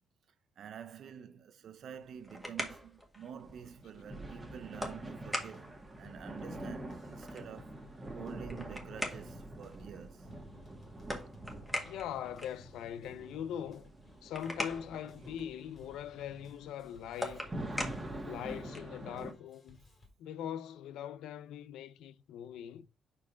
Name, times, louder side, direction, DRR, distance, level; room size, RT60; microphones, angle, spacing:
voice 1, 0.6-7.8 8.1-10.3, right 8 dB, 65° right, 0.6 m, -48 dB
sound 1, 1.9-19.0, equal, 5° left, 1.6 m, -44 dB
sound 2, 3.4-19.3, right 1 dB, 20° right, 1.8 m, -46 dB
sound 3, 4.9-5.8 6.0-8.5 8.8-20.1, equal, 35° left, 2.4 m, -58 dB
voice 2, 11.8-13.9 14.2-17.5 18.2-19.8 20.2-22.9, left 9 dB, 85° left, 0.5 m, -41 dB
4.8 x 4.7 x 5.6 m
cardioid pair, 90°, 0 cm